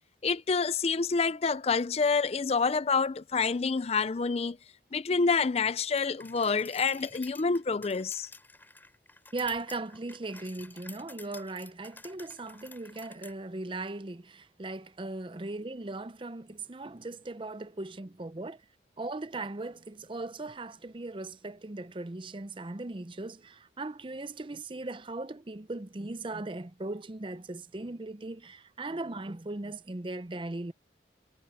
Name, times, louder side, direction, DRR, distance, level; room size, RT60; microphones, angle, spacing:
voice 1, 0.2-4.6 4.9-8.3, left 4 dB, 35° left, 0.4 m, -27 dB
sound 1, 6.0-13.3, left 3 dB, 10° left, 5.1 m, -51 dB
voice 2, 9.3-18.6 19.0-30.7, right 2 dB, 25° right, 0.6 m, -38 dB
head